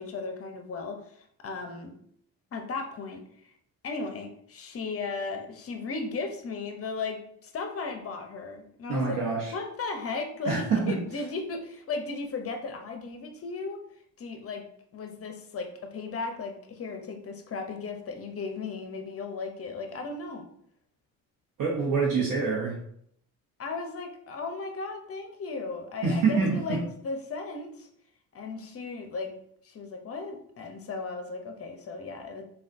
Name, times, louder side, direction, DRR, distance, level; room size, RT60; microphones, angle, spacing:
voice 1, 0.0-1.9 2.5-3.5 3.8-9.0 9.5-13.8 14.2-14.7 14.9-20.4 23.6-27.9 28.3-29.3 29.6-32.4, left 4 dB, 40° left, 5 dB, 0.7 m, -36 dB
voice 2, 8.9-9.5 10.4-11.0 21.6-22.8 26.0-26.8, right 4 dB, 60° right, -3 dB, 0.9 m, -26 dB
3.6 x 2.3 x 2.5 m, 0.67 s
cardioid pair, 80°, 37 cm